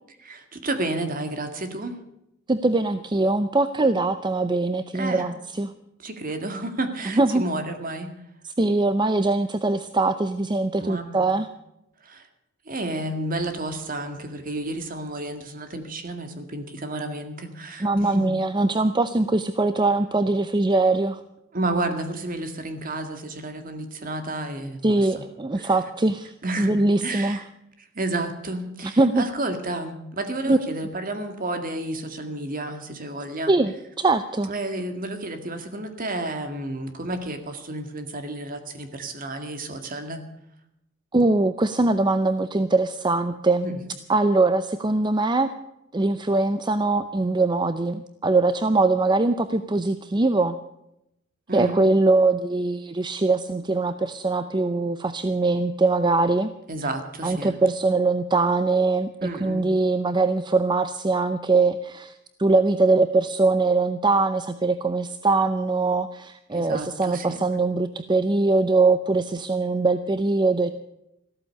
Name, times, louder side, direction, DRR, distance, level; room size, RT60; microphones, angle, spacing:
voice 1, 0.2-2.0 4.9-5.3 6.0-8.1 10.8-11.3 12.0-12.3 12.7-18.3 21.5-25.3 25.5-25.7 26.4-27.5 27.8-33.6 34.5-40.2 43.6-43.8 51.5-51.8 56.7-57.6 59.2-59.7 66.5-67.4, right 2 dB, 45° right, 7 dB, 2.0 m, -31 dB
voice 2, 2.5-5.7 7.1-7.4 8.6-11.5 17.8-21.2 24.8-27.4 29.0-29.2 30.5-30.6 33.5-34.5 41.1-43.7 44.1-45.5 45.9-50.6 51.5-56.5 57.2-62.1 62.4-70.7, right 3 dB, 20° right, 11 dB, 0.6 m, -22 dB
14.5 x 13.0 x 6.5 m, 0.83 s
head